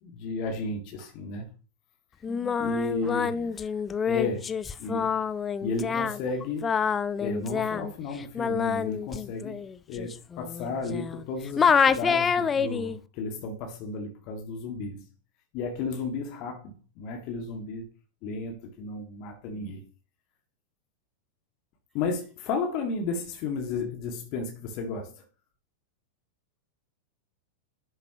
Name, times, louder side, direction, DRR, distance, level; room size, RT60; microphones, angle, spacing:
voice 1, 0.0-1.5 2.6-3.7 4.0-4.5 4.8-5.1 5.6-6.7 7.2-9.6 9.9-15.1 15.5-17.8 18.2-19.8 21.9-25.2, left 3 dB, 45° left, 1.9 m, -33 dB
Singing, 2.2-11.3 11.6-13.0, left 6 dB, 20° left, 0.5 m, -27 dB
voice 2, 2.3-2.7 3.0-3.6 19.5-19.8, right 1 dB, 25° right, 4.1 m, -48 dB
11.5 x 6.7 x 2.9 m
figure-of-eight pair, 90°, 0 cm